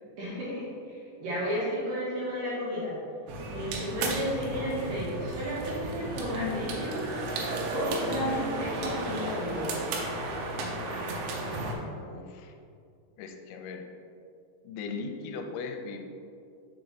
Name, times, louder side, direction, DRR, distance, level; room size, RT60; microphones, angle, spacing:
voice 1, 0.2-3.0 3.5-7.2 7.7-9.9, equal, 60° right, -8 dB, 2.7 m, -33 dB
sound 1, 3.3-11.7, right 2 dB, 90° right, 3.1 m, -34 dB
voice 2, 11.9-12.5 13.2-13.9 14.6-16.1, left 4 dB, 85° left, 4 dB, 2.9 m, -39 dB
6.5 x 4.5 x 4.1 m, 2.4 s
omnidirectional pair, 5.2 m